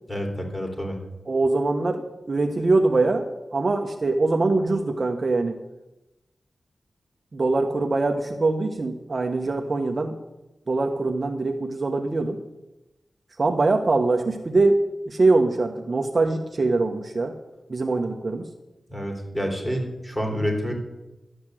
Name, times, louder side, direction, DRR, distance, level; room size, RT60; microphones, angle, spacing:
voice 1, 0.1-1.0 18.9-20.7, equal, 10° left, 2 dB, 3.1 m, -28 dB
voice 2, 1.3-2.0 2.3-3.3 3.5-5.6 7.3-10.2 10.7-12.4 13.4-17.3 17.7-18.5, right 3 dB, 40° right, 4 dB, 0.9 m, -23 dB
12.0 x 8.0 x 7.7 m, 1.0 s
wide cardioid pair, 120°, 0 cm